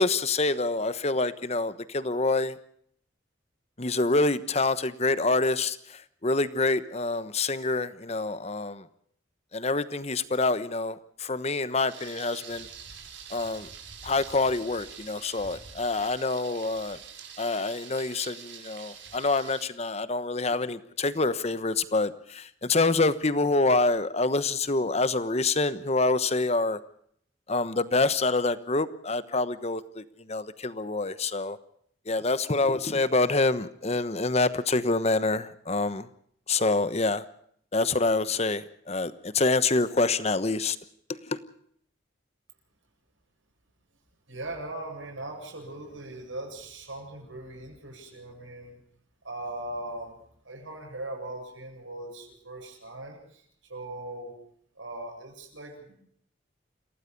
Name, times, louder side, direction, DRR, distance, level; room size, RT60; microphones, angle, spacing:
voice 1, 0.0-2.6 3.8-5.8 6.2-8.8 9.5-12.7 13.3-13.7 14.0-17.0 17.4-26.8 27.5-30.0 30.3-31.6 32.1-36.1 36.5-37.2 37.7-40.8, left 3 dB, 35° left, 14 dB, 1.1 m, -26 dB
Thunder, 11.9-19.6, right 7 dB, 65° right, 4.8 m, -45 dB
voice 2, 44.3-48.8 49.2-50.2 50.4-53.4 53.7-54.3 54.8-56.0, right 1 dB, 85° right, 1 dB, 7.7 m, -39 dB
28.0 x 17.5 x 5.3 m, 0.65 s
head